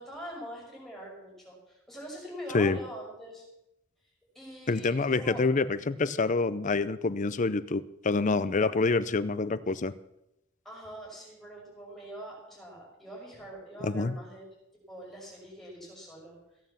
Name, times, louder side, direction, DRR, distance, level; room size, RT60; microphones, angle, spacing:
voice 1, 0.0-3.4 4.3-5.4 10.6-14.4 14.9-16.4, equal, ahead, -4 dB, 6.0 m, -44 dB
voice 2, 4.7-9.9 13.8-14.2, left 3 dB, 35° left, 15 dB, 0.5 m, -27 dB
16.0 x 9.1 x 7.3 m, 0.85 s
head